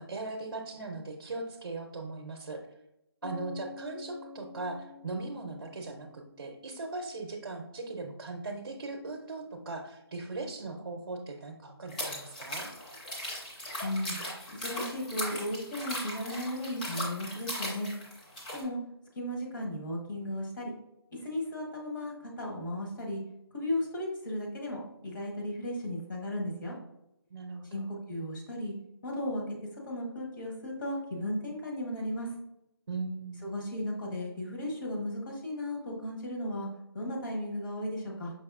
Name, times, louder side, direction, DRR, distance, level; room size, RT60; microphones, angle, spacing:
voice 1, 0.0-2.6 3.2-12.7 27.3-27.9 32.9-33.4, right 3 dB, 55° right, 2 dB, 0.6 m, -39 dB
Bass guitar, 3.2-6.9, left 4 dB, 65° left, 1.5 m, -48 dB
sound 1, 11.9-18.6, equal, 20° left, 0.6 m, -38 dB
voice 2, 13.8-14.2 14.6-17.9 18.5-18.8 19.1-20.7 21.2-23.2 23.5-26.7 27.7-28.7 29.0-29.4 29.9-32.3 33.4-36.7 36.9-38.3, left 1 dB, 50° left, -2 dB, 1.1 m, -35 dB
5.3 x 2.9 x 2.4 m, 0.84 s
figure-of-eight pair, 165°, 13 cm